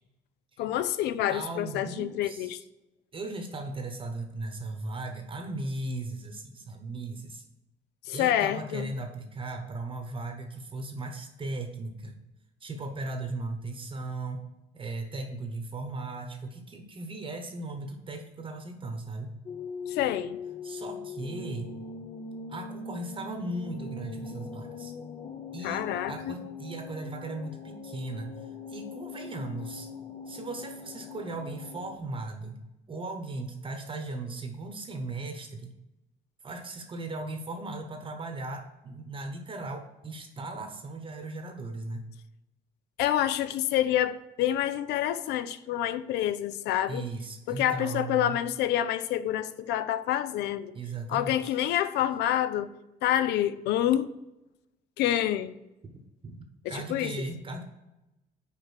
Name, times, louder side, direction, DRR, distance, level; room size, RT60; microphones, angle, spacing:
voice 1, 0.6-2.6 8.1-8.9 19.9-20.4 25.6-26.4 43.0-47.1 47.5-50.7 51.1-52.7 53.0-54.1 55.0-55.5 56.6-57.1, left 12 dB, 80° left, 0.5 m, -27 dB
voice 2, 1.3-2.5 3.1-7.4 8.1-12.2 12.6-14.4 14.7-19.3 20.6-21.7 22.5-24.9 25.5-29.9 30.3-32.6 32.9-35.7 36.4-42.0 46.9-48.4 50.7-51.6 55.8-57.6, right 2 dB, 30° right, 1.0 m, -37 dB
sound 1, 19.5-32.0, left 4 dB, 35° left, 0.7 m, -41 dB
5.2 x 5.1 x 6.4 m
cardioid pair, 110°, 17 cm